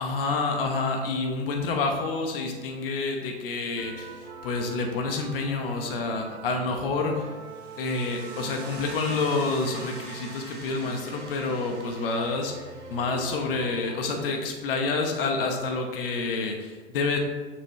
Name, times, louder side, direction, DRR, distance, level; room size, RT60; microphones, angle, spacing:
voice 1, 0.0-4.2 4.4-7.2 7.8-12.5 12.9-17.2, left 3 dB, 55° left, 3 dB, 1.2 m, -28 dB
Uplifting Dramatic Soundtrack - War Around Us, 3.8-14.3, right 4 dB, 10° right, 0.3 m, -43 dB
sound 1, 7.4-14.3, right 2 dB, 70° right, 1.5 m, -46 dB
6.7 x 5.7 x 3.3 m, 1.4 s
figure-of-eight pair, 105°, 34 cm